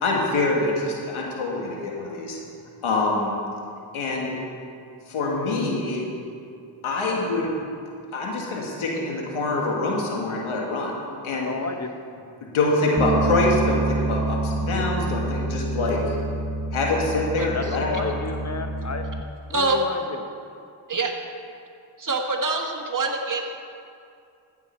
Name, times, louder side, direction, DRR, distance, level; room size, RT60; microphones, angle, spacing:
voice 1, 0.0-2.4 2.8-3.3 3.9-4.4 5.1-6.0 6.8-7.5 8.1-10.9 11.2-11.5 12.5-16.0 16.7-18.1, left 2 dB, 85° left, -1 dB, 1.8 m, -25 dB
voice 2, 11.5-11.9 17.5-19.0 19.5-20.2, left 4 dB, 35° left, 6 dB, 1.2 m, -31 dB
Bass guitar, 13.0-19.2, right 2 dB, 25° right, 0.7 m, -27 dB
voice 3, 22.0-23.5, right 3 dB, 40° right, 2 dB, 1.7 m, -25 dB
14.5 x 7.1 x 4.4 m, 2.4 s
supercardioid pair, 45°, 48 cm